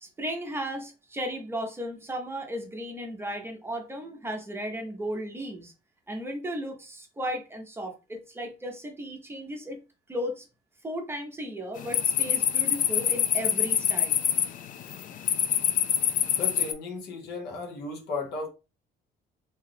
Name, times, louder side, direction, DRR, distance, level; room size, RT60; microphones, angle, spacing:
voice 1, 0.0-5.7 6.1-9.8 10.1-10.4 10.8-14.2, equal, 15° right, 0.7 m, -35 dB
sound 1, 11.8-16.7, left 10 dB, 50° left, 0.4 m, -25 dB
voice 2, 16.3-18.5, left 3 dB, 75° left, 1.0 m, -35 dB
2.8 x 2.3 x 3.3 m
cardioid pair, 110°, 17 cm